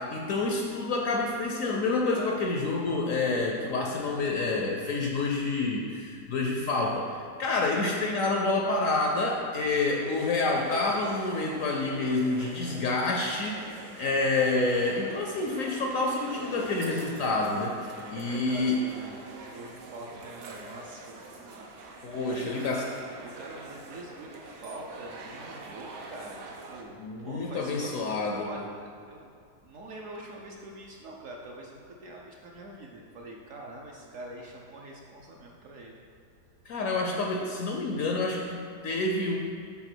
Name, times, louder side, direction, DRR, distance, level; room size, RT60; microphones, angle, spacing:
voice 1, 0.0-18.8 22.0-22.8 27.0-28.5 36.7-39.4, left 3 dB, 70° left, 0 dB, 0.8 m, -28 dB
sound 1, 9.8-26.8, right 3 dB, 80° right, 1.3 m, -45 dB
voice 2, 17.8-21.6 21.9-22.8 23.2-27.9 28.3-29.3 29.6-36.0, right 2 dB, 65° right, -1 dB, 0.8 m, -44 dB
5.8 x 4.0 x 6.0 m, 2.3 s
omnidirectional pair, 1.8 m